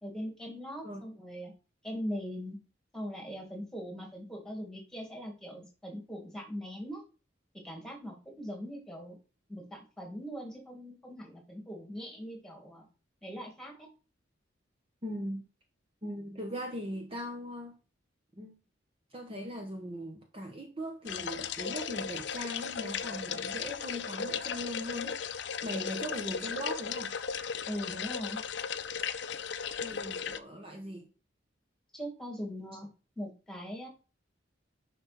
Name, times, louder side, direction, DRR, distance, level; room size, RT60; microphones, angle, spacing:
voice 1, 0.0-1.5 1.8-2.6 2.9-7.0 7.5-9.2 9.5-12.9 13.2-13.9 27.7-28.4 31.9-32.9 33.2-33.9, equal, 5° left, 2.6 m, -41 dB
voice 2, 15.0-15.4 16.0-17.7 18.4-18.5 19.1-27.1 29.8-31.0, equal, 30° right, 1.3 m, -39 dB
sound 1, 21.1-30.4, left 7 dB, 65° left, 0.6 m, -36 dB
10.0 x 5.6 x 4.3 m
head